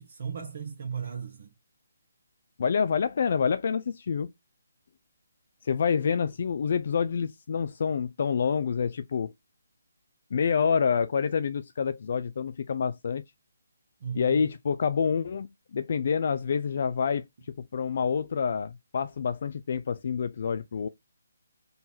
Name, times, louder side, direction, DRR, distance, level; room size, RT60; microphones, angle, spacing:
voice 1, 0.0-1.5 14.0-14.5 16.7-16.8, right 7 dB, 50° right, 1.0 m, -36 dB
voice 2, 2.6-4.3 5.6-9.3 10.3-13.2 14.2-20.9, left 6 dB, 50° left, 0.4 m, -27 dB
4.0 x 2.6 x 4.3 m
figure-of-eight pair, 155°, 0 cm